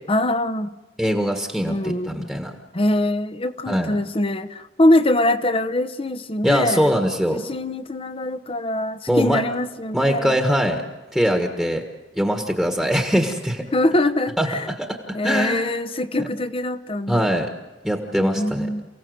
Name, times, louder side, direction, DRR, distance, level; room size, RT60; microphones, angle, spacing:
voice 1, 0.1-0.7 1.6-2.3 2.7-6.9 7.3-10.4 13.7-14.7 15.1-17.3 18.1-18.9, left 1 dB, 30° left, 13 dB, 0.9 m, -23 dB
voice 2, 1.0-2.5 3.7-3.9 6.4-7.4 9.1-9.4 9.9-10.8 11.1-11.8 12.2-13.7 14.4-14.5 14.8-15.7 16.2-16.3 17.1-17.5 17.8-18.7, equal, ahead, 4 dB, 1.5 m, -22 dB
29.0 x 16.5 x 7.9 m, 1.2 s
head